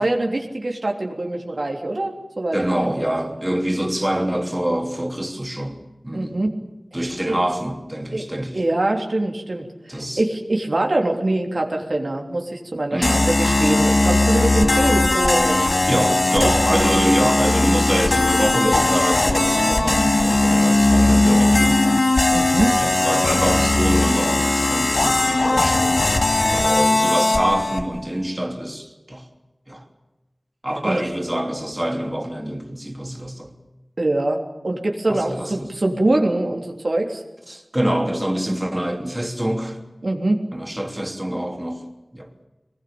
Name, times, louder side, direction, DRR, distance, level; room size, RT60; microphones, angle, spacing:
voice 1, 0.0-2.6 6.1-6.5 6.9-7.4 8.1-8.3 8.5-15.6 16.4-16.8 22.3-22.8 30.8-31.0 34.0-37.2 40.0-40.4, right 2 dB, 75° right, 2 dB, 3.4 m, -23 dB
voice 2, 2.5-5.8 6.0-6.3 6.9-8.6 9.9-10.2 12.9-13.3 15.9-22.0 22.8-26.0 26.5-29.2 29.7-29.8 30.6-33.5 35.1-35.7 37.5-39.8 40.5-41.8 42.1-42.3, right 1 dB, 20° right, 2 dB, 3.2 m, -25 dB
sound 1, 13.0-27.8, left 2 dB, 85° left, 2.6 m, -18 dB
23.0 x 20.5 x 8.8 m, 1.0 s
wide cardioid pair, 55°, 0 cm